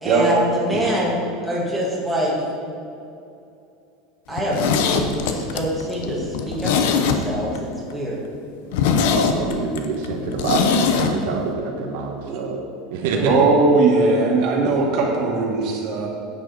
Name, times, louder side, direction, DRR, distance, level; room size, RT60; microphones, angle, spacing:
voice 1, 0.0-2.3 4.3-8.2 13.1-13.3, equal, ahead, -5 dB, 1.9 m, -25 dB
Zipper (clothing), 4.3-7.6 7.9-8.0 8.3-8.4 8.7-11.1 11.4-11.5, left 6 dB, 70° left, 0.8 m, -21 dB
voice 2, 9.1-12.6 12.9-13.3, right 4 dB, 70° right, 1 dB, 1.2 m, -26 dB
voice 3, 13.3-16.1, right 3 dB, 45° right, -1 dB, 2.0 m, -18 dB
10.5 x 8.7 x 4.2 m, 2.6 s
supercardioid pair, 160°, 0 cm